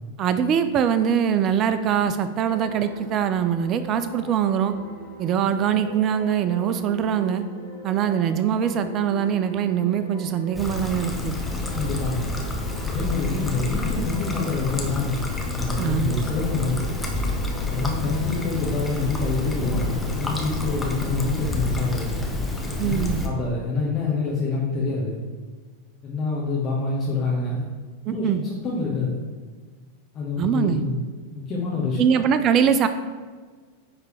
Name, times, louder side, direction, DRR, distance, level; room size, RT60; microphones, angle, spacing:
voice 1, 0.2-4.7 5.2-7.4 7.8-11.4 15.8-16.2 22.8-23.2 28.1-28.4 30.4-30.8 32.0-32.9, right 8 dB, 35° right, 10 dB, 0.3 m, -22 dB
sound 1, 2.4-21.4, equal, 80° left, 1.8 m, -42 dB
Trickle dribble, 10.5-23.3, left 2 dB, 5° left, 0.9 m, -28 dB
voice 2, 11.7-12.3 12.9-15.2 15.5-16.8 17.7-22.1 22.8-25.1 26.0-27.7 28.1-29.2 30.1-31.0 31.3-32.2, left 3 dB, 30° left, -5 dB, 1.1 m, -26 dB
9.4 x 3.3 x 3.2 m, 1.5 s
figure-of-eight pair, 90°, 0 cm